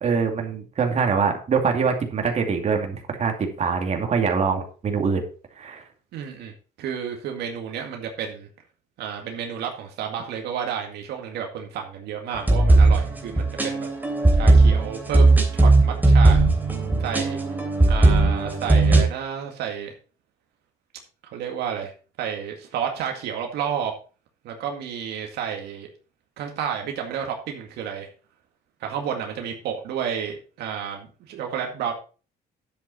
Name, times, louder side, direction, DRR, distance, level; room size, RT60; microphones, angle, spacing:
voice 1, 0.0-5.2 5.6-5.8, right 5 dB, 40° right, 3 dB, 2.6 m, -24 dB
voice 2, 6.1-6.5 6.8-8.5 9.0-13.9 14.3-16.4 17.0-17.4 17.9-19.9 21.3-21.9 22.2-23.9 24.4-25.9 26.4-28.1 28.8-31.9, right 8 dB, 75° right, 2 dB, 2.1 m, -31 dB
sound 1, 12.3-19.0, right 2 dB, 10° right, 3.1 m, -17 dB
10.0 x 7.9 x 4.3 m, 0.36 s
cardioid pair, 110°, 17 cm